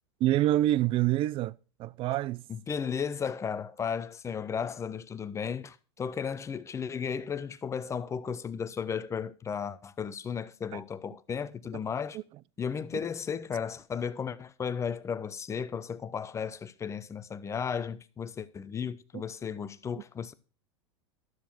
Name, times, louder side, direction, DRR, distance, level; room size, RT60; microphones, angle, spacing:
voice 1, 0.2-2.4 10.7-10.8 12.1-12.2 19.1-19.2, right 14 dB, 35° right, 0.4 m, -27 dB
voice 2, 2.5-12.2 12.6-20.3, left 7 dB, 20° left, 0.7 m, -34 dB
12.5 x 7.0 x 4.4 m
supercardioid pair, 120°, 15 cm